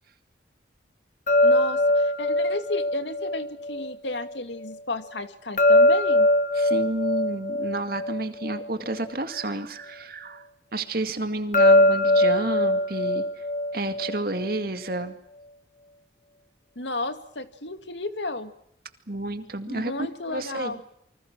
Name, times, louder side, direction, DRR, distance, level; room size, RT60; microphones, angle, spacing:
sound 1, 1.3-4.3 5.6-9.1 11.5-14.6, left 1 dB, 45° left, 1.1 m, -22 dB
voice 1, 1.4-6.3 16.8-18.5 19.7-20.8, left 2 dB, 80° left, 9 dB, 2.3 m, -33 dB
voice 2, 6.5-10.5 10.7-13.3 13.7-15.2 19.1-19.9 20.3-20.8, right 2 dB, 55° right, 8 dB, 2.2 m, -30 dB
28.0 x 25.5 x 6.2 m, 0.74 s
head